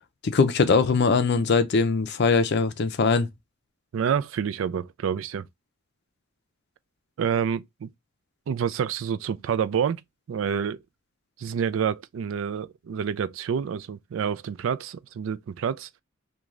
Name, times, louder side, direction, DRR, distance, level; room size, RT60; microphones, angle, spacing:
voice 1, 0.2-3.3, left 4 dB, 55° left, 0.5 m, -21 dB
voice 2, 3.9-5.4 7.2-7.9 8.5-10.0 10.3-10.8 11.4-16.0, right 7 dB, 70° right, 0.3 m, -28 dB
3.0 x 2.3 x 3.6 m
head